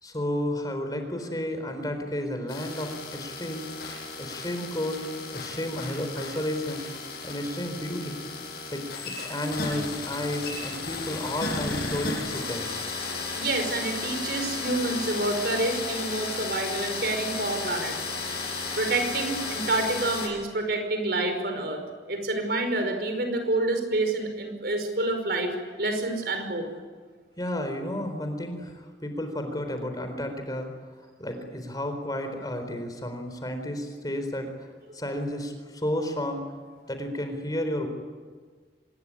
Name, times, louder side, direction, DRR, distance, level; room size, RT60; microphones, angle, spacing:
voice 1, 0.0-3.7 4.2-6.9 7.2-8.2 8.7-12.7 27.4-30.7 31.2-34.5 34.9-36.4 36.9-37.9, left 1 dB, 20° left, 6 dB, 4.1 m, -32 dB
sound 1, 2.5-20.3, left 4 dB, 60° left, 7.4 m, -34 dB
voice 2, 13.3-17.9 18.8-21.8 22.1-26.7, right 2 dB, 60° right, 6 dB, 5.2 m, -28 dB
26.0 x 21.0 x 10.0 m, 1.5 s
head